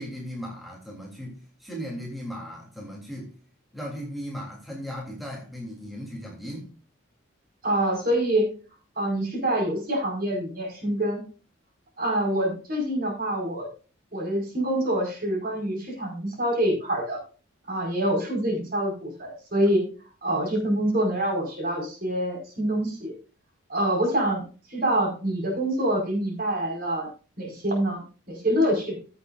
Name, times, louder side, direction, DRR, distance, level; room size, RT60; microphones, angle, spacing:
voice 1, 0.0-3.3 3.7-6.7, equal, ahead, 3.3 m, -37 dB
voice 2, 7.6-8.5 8.9-11.2 12.0-13.7 14.1-17.2 17.7-19.8 20.2-23.1 23.7-24.4 24.7-27.1 27.4-28.0 28.3-29.0, right 1 dB, 45° right, 5.0 m, -26 dB
16.0 x 8.2 x 2.5 m
head